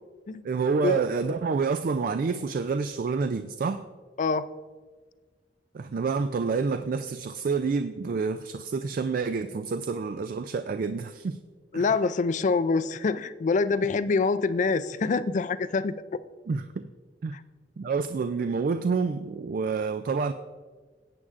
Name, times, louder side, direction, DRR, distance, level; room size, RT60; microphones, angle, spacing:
voice 1, 0.4-3.8 5.7-11.4 11.7-12.0 16.5-16.7 17.2-17.4 17.8-20.3, right 4 dB, 50° right, 10 dB, 0.3 m, -28 dB
voice 2, 4.2-4.5 11.7-16.2, left 4 dB, 45° left, 15 dB, 0.4 m, -25 dB
17.5 x 8.5 x 2.5 m, 1.4 s
head